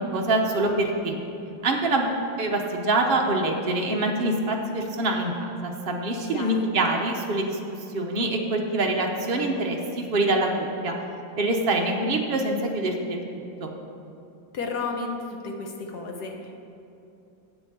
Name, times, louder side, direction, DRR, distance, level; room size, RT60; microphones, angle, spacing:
voice 1, 0.1-1.2 1.6-7.6 7.9-10.9 11.4-13.2 13.6-13.7, right 2 dB, 65° right, 1 dB, 0.5 m, -25 dB
voice 2, 6.3-6.7 14.5-16.5, left 4 dB, 60° left, 2 dB, 1.3 m, -32 dB
8.1 x 7.4 x 6.8 m, 2.7 s
omnidirectional pair, 2.3 m